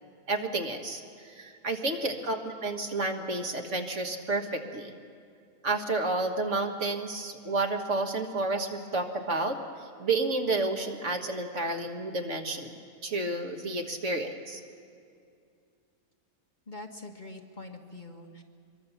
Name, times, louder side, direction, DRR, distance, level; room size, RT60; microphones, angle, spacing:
voice 1, 0.3-4.9 5.6-9.6 10.0-12.7 13.0-14.6, right 2 dB, 55° right, 3 dB, 1.8 m, -30 dB
voice 2, 16.7-18.4, left 2 dB, 35° left, 2 dB, 1.4 m, -44 dB
24.5 x 23.0 x 7.2 m, 2.4 s
omnidirectional pair, 1.6 m